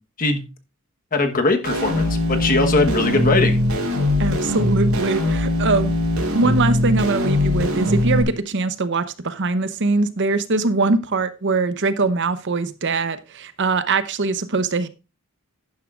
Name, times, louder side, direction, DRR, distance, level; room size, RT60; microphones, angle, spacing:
voice 1, 1.1-3.6, left 3 dB, 40° left, 1.2 m, -20 dB
sound 1, 1.6-8.2, left 1 dB, 70° right, 3.5 m, -21 dB
voice 2, 4.2-6.0 6.3-14.9, right 3 dB, 55° right, 0.8 m, -22 dB
11.5 x 10.5 x 2.5 m
head